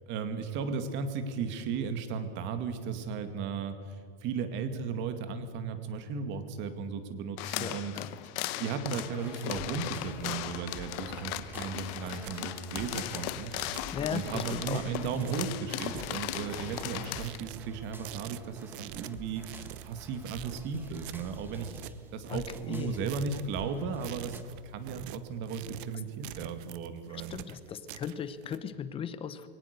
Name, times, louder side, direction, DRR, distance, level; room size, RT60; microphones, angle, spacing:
voice 1, 0.1-7.9 8.6-13.5 14.1-21.8 22.1-27.4, right 5 dB, 40° right, 9 dB, 2.1 m, -35 dB
sound 1, 7.4-17.4, left 15 dB, 45° left, 1.0 m, -38 dB
voice 2, 7.6-8.1 13.9-14.8 22.3-22.4 22.7-23.0 27.1-29.5, left 8 dB, 20° left, 13 dB, 0.9 m, -37 dB
sound 2, 8.8-24.4, right 2 dB, 5° right, 1.4 m, -49 dB
sound 3, 11.8-28.6, right 14 dB, 60° right, 1.0 m, -46 dB
23.0 x 18.0 x 6.7 m, 2.1 s
supercardioid pair, 155°, 30 cm